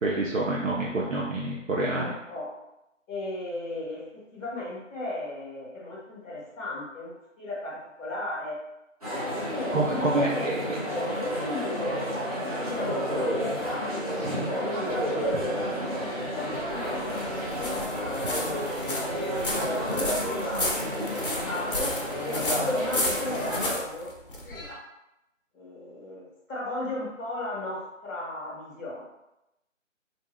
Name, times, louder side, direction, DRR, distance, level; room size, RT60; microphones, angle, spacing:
voice 1, 0.0-2.1 9.7-10.8 14.2-14.5 15.3-15.4, right 2 dB, 75° right, -4 dB, 0.7 m, -27 dB
voice 2, 1.9-2.5 3.1-8.6 9.5-12.3 12.6-13.4 13.6-13.9 14.4-17.3 17.5-20.7 20.9-21.9 22.2-24.1 24.4-24.8 25.5-29.0, left 1 dB, 15° left, -6 dB, 1.0 m, -36 dB
sound 1, 9.0-23.7, equal, 30° right, 0.7 m, -30 dB
sound 2, 16.5-24.7, left 1 dB, 45° left, 0.6 m, -33 dB
2.6 x 2.2 x 3.3 m, 0.90 s
figure-of-eight pair, 155°, 39 cm